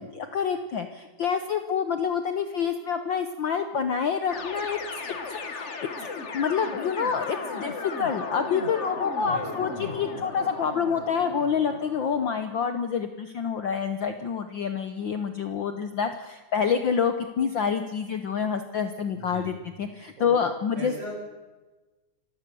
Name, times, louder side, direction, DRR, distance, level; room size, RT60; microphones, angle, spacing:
voice 1, 0.0-5.0 5.4-6.1 6.3-19.5 19.8-20.9, left 6 dB, 85° left, 8 dB, 1.0 m, -27 dB
sound 1, 4.3-12.4, left 4 dB, 50° left, 0.8 m, -36 dB
voice 2, 19.1-19.6 20.2-20.4 20.8-21.1, right 1 dB, 65° right, -3 dB, 7.0 m, -39 dB
27.0 x 15.5 x 6.9 m, 1.2 s
omnidirectional pair, 3.6 m